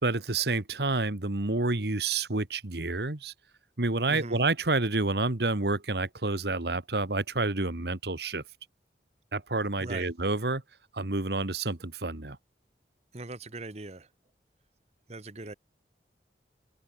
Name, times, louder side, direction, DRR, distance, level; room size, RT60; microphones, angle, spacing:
voice 1, 0.0-3.3 3.8-8.4 9.3-10.6 10.9-12.4, right 3 dB, 65° right, 1.7 m, -29 dB
voice 2, 4.1-4.4 9.8-10.1 13.1-14.1 15.1-15.5, right 2 dB, 40° right, 1.3 m, -40 dB
open air
head